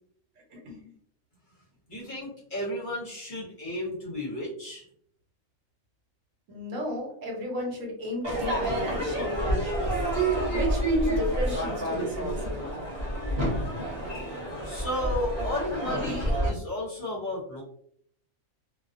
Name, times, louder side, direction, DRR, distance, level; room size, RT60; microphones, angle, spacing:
voice 1, 0.5-0.9 6.5-10.0 10.5-12.7 15.8-16.2, left 1 dB, 70° right, 0 dB, 1.1 m, -34 dB
voice 2, 1.9-4.8 14.6-17.6, left 1 dB, 45° left, -5 dB, 0.8 m, -33 dB
Crowd / Fireworks, 8.2-16.5, right 1 dB, 40° right, 0.7 m, -28 dB
2.3 x 2.2 x 2.5 m, 0.65 s
omnidirectional pair, 1.4 m